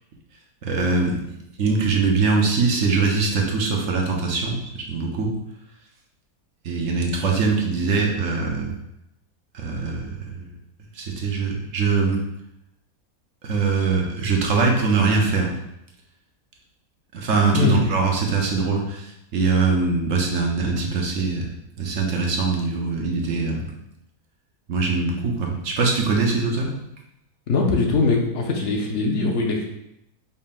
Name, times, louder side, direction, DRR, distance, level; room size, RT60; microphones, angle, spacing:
voice 1, 0.6-1.2 1.6-5.3 6.6-8.7 9.5-10.5 10.9-12.2 13.4-15.5 17.1-21.5 21.8-23.6 24.7-26.7, right 4 dB, 65° right, 0 dB, 1.0 m, -22 dB
voice 2, 17.5-17.9 27.5-29.7, left 3 dB, 60° left, 1 dB, 0.9 m, -21 dB
5.4 x 3.5 x 2.4 m, 0.84 s
omnidirectional pair, 1.6 m